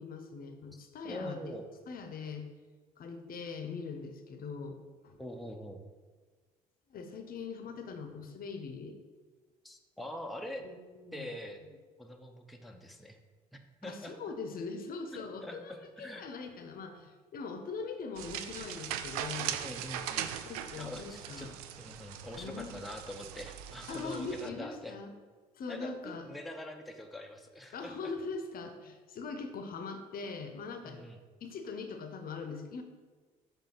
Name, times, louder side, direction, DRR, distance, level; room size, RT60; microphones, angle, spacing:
voice 1, 0.0-1.6 1.9-2.5 3.0-5.2 6.9-9.0 10.6-11.3 13.8-15.7 16.0-19.6 20.4-21.5 22.4-22.7 23.9-25.1 25.6-26.3 27.7-31.0 31.4-32.8, left 4 dB, 50° left, 6 dB, 0.8 m, -41 dB
voice 2, 1.0-1.6 5.2-5.8 9.6-10.7 11.1-11.6 12.0-13.2 13.5-14.2 15.1-16.3 19.5-20.3 20.8-25.0 25.7-28.1 30.8-31.2, left 1 dB, ahead, 3 dB, 0.7 m, -44 dB
sound 1, 18.2-24.5, right 10 dB, 80° right, 0.4 m, -40 dB
6.3 x 3.5 x 5.7 m, 1.4 s
hypercardioid pair, 55°, 19 cm